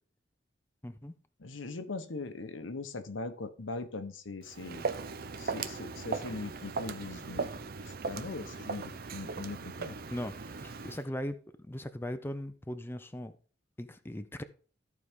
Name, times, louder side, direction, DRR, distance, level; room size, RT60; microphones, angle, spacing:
voice 1, 0.8-1.1 10.1-13.4 13.8-14.4, left 1 dB, 10° left, 0.5 m, -39 dB
voice 2, 1.4-4.9 5.4-10.0, left 3 dB, 90° left, 1.0 m, -41 dB
Walk footsteps, 4.4-11.0, right 4 dB, 55° right, 0.7 m, -38 dB
13.5 x 4.8 x 3.6 m
head